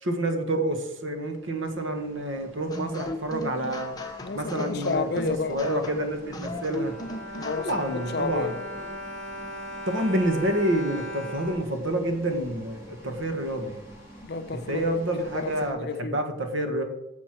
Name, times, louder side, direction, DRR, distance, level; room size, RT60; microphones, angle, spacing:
voice 1, 0.0-5.1 5.5-6.9 7.6-8.5 9.9-13.8 14.7-16.8, right 1 dB, 70° right, 1.6 m, -28 dB
sound 1, 0.9-15.7, right 1 dB, 15° right, 3.0 m, -49 dB
sound 2, 2.7-8.0, left 1 dB, 20° left, 1.1 m, -37 dB
voice 2, 4.2-5.9 7.3-8.6 14.2-14.9 15.3-16.3, left 4 dB, 50° left, 0.6 m, -32 dB
Bowed string instrument, 6.3-12.5 13.2-13.3 13.6-13.8, equal, 5° left, 3.2 m, -39 dB
10.5 x 6.9 x 4.7 m
head